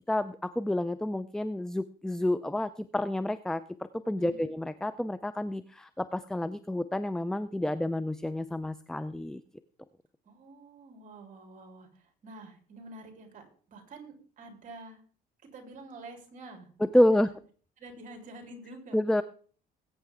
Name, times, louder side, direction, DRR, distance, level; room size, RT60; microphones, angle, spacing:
voice 1, 0.1-3.6 4.1-9.4 16.9-17.3 18.9-19.2, left 1 dB, 5° left, 13 dB, 0.5 m, -29 dB
voice 2, 10.2-15.0 15.4-17.3 17.8-19.0, right 2 dB, 50° right, 3 dB, 3.8 m, -48 dB
20.5 x 8.9 x 3.7 m, 0.43 s
cardioid pair, 110°, 17 cm